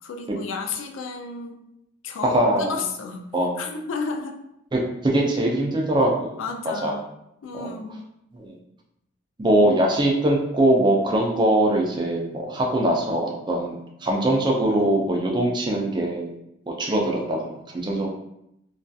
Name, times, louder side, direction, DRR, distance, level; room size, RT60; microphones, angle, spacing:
voice 1, 0.0-1.6 2.0-3.3 3.6-4.4 6.4-7.1 7.4-8.0, left 4 dB, 75° left, 3 dB, 0.4 m, -32 dB
voice 2, 2.2-2.8 3.3-3.6 4.7-6.4 6.8-7.0 7.6-7.8 8.4-8.6 9.4-13.7 14.0-16.3 16.7-18.1, right 1 dB, 20° right, -1 dB, 0.4 m, -22 dB
2.5 x 2.3 x 2.3 m, 0.81 s
head